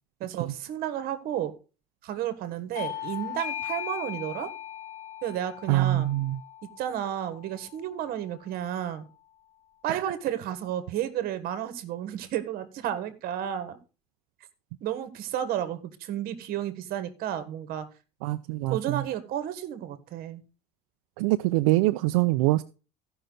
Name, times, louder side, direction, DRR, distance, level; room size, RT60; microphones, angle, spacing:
voice 1, 0.2-1.5 2.0-4.5 5.2-6.1 6.8-9.1 9.8-13.8 14.8-17.8 18.7-20.4, right 11 dB, 55° right, 1.4 m, -32 dB
Bell / Doorbell, 2.7-7.8, left 11 dB, 45° left, 3.1 m, -38 dB
voice 2, 5.7-6.4 9.9-10.0 18.2-19.0 21.2-22.6, right 18 dB, 85° right, 0.5 m, -24 dB
14.5 x 5.6 x 3.9 m
supercardioid pair, 120°, 18 cm